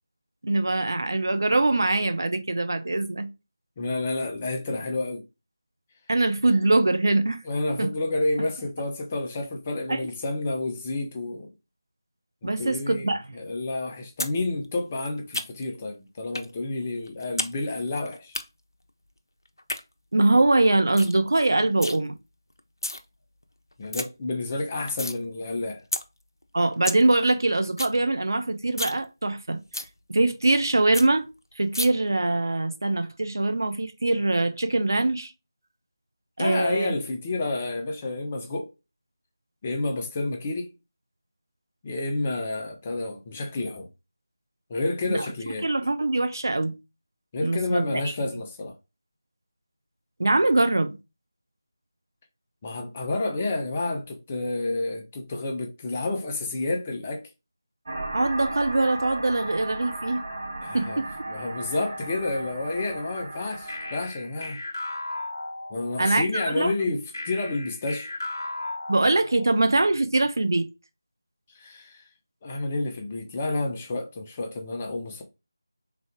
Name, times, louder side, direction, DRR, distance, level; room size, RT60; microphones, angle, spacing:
voice 1, 0.4-3.3 6.1-7.4 7.8-7.9 9.9-10.1 12.4-13.2 20.1-22.1 26.5-29.6 30.1-31.3 31.6-35.3 36.4-36.9 45.1-45.3 45.6-46.7 47.4-48.1 50.2-51.0 58.1-60.2 60.7-61.3 66.0-66.7 68.9-70.7, right 2 dB, 55° right, 0.6 m, -23 dB
voice 2, 3.8-5.2 7.5-11.5 12.4-18.4 23.8-25.8 36.4-38.7 39.6-40.7 41.8-43.9 44.7-45.7 47.3-48.7 52.6-57.3 60.6-61.0 61.3-64.6 65.7-68.1 71.5-72.1 72.4-75.2, left 2 dB, 20° left, 0.6 m, -30 dB
sound 1, 14.2-14.4 14.6-15.8 16.3-16.5 16.8-17.5 17.8-18.4 19.5-19.8 20.3-20.4 20.7-20.8 21.0-21.2 21.4-22.0 22.6-23.0 23.4-23.5 23.7-24.0 24.4-25.2 25.5-25.6 25.9-26.0 26.4-26.5 26.7-27.0 27.3-27.4 27.6-28.0 28.3-28.4 28.7-29.0 29.3-29.4 29.7-29.9 30.3-30.4 30.6-30.7 30.9-31.1 31.7-31.9, left 1 dB, 70° left, 0.7 m, -31 dB
sound 2, 57.8-64.0, right 2 dB, 40° right, 1.5 m, -35 dB
sound 3, 63.7-66.2 67.1-69.7, left 2 dB, 45° left, 1.0 m, -36 dB
3.7 x 3.3 x 3.6 m
figure-of-eight pair, 165°, 2 cm